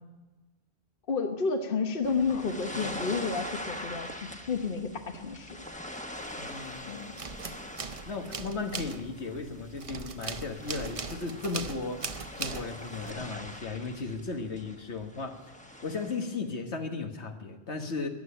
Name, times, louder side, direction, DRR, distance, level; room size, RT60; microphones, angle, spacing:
voice 1, 1.1-5.6 6.9-7.1, left 5 dB, 55° left, 6 dB, 1.2 m, -31 dB
sound 1, 2.0-16.3, left 1 dB, 5° left, 1.0 m, -43 dB
sound 2, 6.2-6.8 7.0-13.1, right 4 dB, 35° right, 0.7 m, -39 dB
voice 2, 6.3-7.6 8.0-12.0 12.4-15.4 15.8-18.1, left 4 dB, 75° left, 4 dB, 1.7 m, -36 dB
14.0 x 10.5 x 9.9 m, 1.2 s
omnidirectional pair, 1.1 m